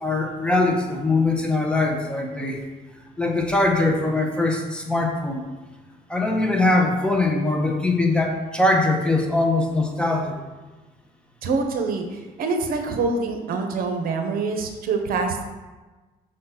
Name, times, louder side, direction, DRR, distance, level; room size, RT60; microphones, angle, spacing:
voice 1, 0.0-2.6 3.2-5.4 6.1-10.4, left 2 dB, 5° left, 1 dB, 1.1 m, -22 dB
voice 2, 11.4-15.4, right 4 dB, 60° right, 5 dB, 1.1 m, -25 dB
6.6 x 4.2 x 5.8 m, 1.2 s
cardioid pair, 110°, 17 cm